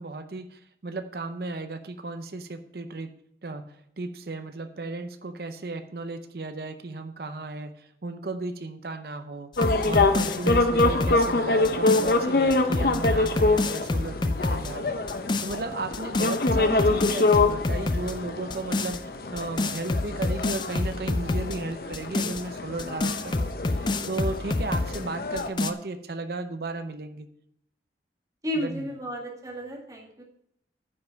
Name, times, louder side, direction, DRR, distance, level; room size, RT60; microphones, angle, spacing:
voice 1, 0.0-3.1 3.4-15.0 15.4-19.0 19.3-27.3 28.6-28.9, right 3 dB, 60° right, 10 dB, 0.7 m, -35 dB
sound 1, 9.5-12.1 12.5-14.7 15.1-15.6 15.9-18.1 18.5-19.0 19.4-21.6 21.9-25.0 25.4-25.7, left 2 dB, 25° left, 0.4 m, -28 dB
sound 2, 9.6-25.5, left 3 dB, 55° left, 0.7 m, -26 dB
voice 2, 28.4-30.2, equal, 20° right, -1 dB, 1.8 m, -33 dB
9.6 x 5.4 x 5.8 m, 0.72 s
head